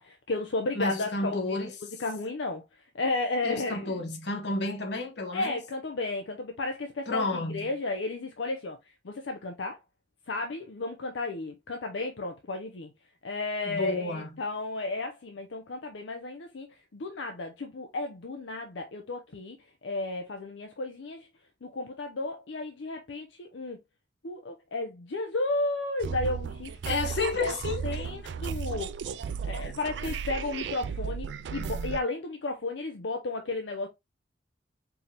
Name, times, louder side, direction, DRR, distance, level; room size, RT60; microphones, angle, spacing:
voice 1, 0.0-1.7 2.0-2.6 2.9-4.0 5.3-8.8 9.0-9.8 10.3-12.9 13.2-16.7 16.9-19.6 19.8-21.3 21.6-23.8 24.2-26.7 27.4-27.5 27.8-28.9 29.4-33.9, left 2 dB, 85° left, 0.6 m, -33 dB
voice 2, 0.7-1.7 3.4-5.6 7.1-7.7 13.6-14.4 26.9-28.1 29.6-29.7, left 3 dB, 70° left, 1.1 m, -31 dB
sound 1, 26.0-32.0, right 6 dB, 75° right, 0.4 m, -34 dB
4.6 x 2.8 x 3.2 m
head